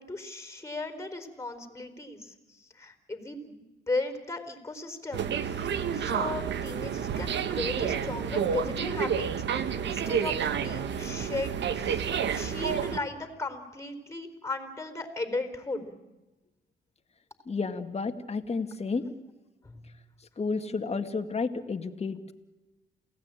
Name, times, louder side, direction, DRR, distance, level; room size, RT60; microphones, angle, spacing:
voice 1, 0.0-9.3 9.7-15.9 19.6-19.9, left 2 dB, 15° left, 8 dB, 4.3 m, -36 dB
sound 1, 5.1-13.0, right 7 dB, 65° right, 1.6 m, -30 dB
voice 2, 17.5-19.0 20.4-22.3, left 4 dB, 30° left, 7 dB, 2.2 m, -31 dB
28.5 x 17.5 x 9.1 m, 1.1 s
cardioid pair, 90°, 20 cm